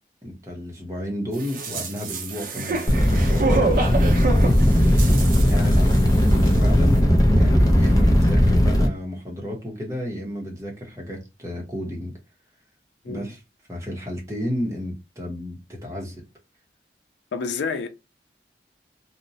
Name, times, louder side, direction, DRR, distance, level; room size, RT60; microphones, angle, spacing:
voice 1, 0.2-4.6 5.5-12.1 13.1-13.4 13.7-16.2, left 1 dB, 15° right, 0.7 m, -32 dB
sound 1, 1.4-6.2 6.5-6.6, right 3 dB, 50° right, 0.5 m, -28 dB
sound 2, 2.9-8.9, equal, 20° left, 0.4 m, -17 dB
voice 2, 17.3-17.9, left 5 dB, 85° left, 0.4 m, -28 dB
2.8 x 2.0 x 2.6 m
head